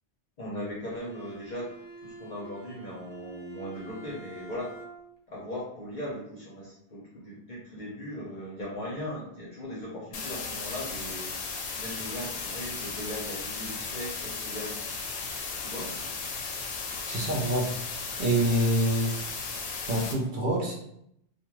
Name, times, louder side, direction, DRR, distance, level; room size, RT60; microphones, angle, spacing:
voice 1, 0.4-1.7 2.0-4.7 5.3-11.3 11.7-15.0 15.6-16.0, left 1 dB, 50° left, -6 dB, 0.7 m, -38 dB
Bowed string instrument, 0.9-5.2, right 4 dB, 85° right, 0.9 m, -46 dB
sound 1, 10.1-20.1, left 4 dB, 80° left, 0.9 m, -35 dB
voice 2, 17.1-17.7 18.2-19.1 19.9-20.7, right 1 dB, 55° right, -2 dB, 0.6 m, -26 dB
2.4 x 2.3 x 3.0 m, 0.73 s
omnidirectional pair, 1.2 m